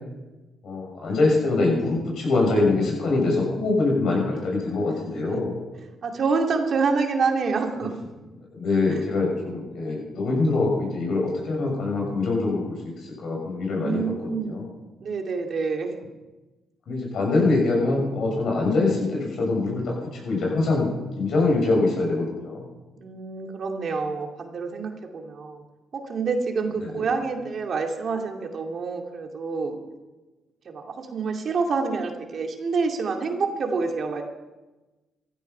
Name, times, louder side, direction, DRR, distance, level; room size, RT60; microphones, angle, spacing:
voice 1, 0.6-5.6 8.5-14.0 14.3-14.7 16.9-20.9 21.2-22.6 26.8-27.1, left 3 dB, 70° left, -1 dB, 6.8 m, -24 dB
voice 2, 6.0-7.9 8.9-9.0 13.7-14.6 15.0-15.9 23.0-25.6 25.9-29.8 30.7-34.2, right 4 dB, 55° right, 3 dB, 2.3 m, -27 dB
14.5 x 13.0 x 5.6 m, 1.1 s
supercardioid pair, 65°, 0 cm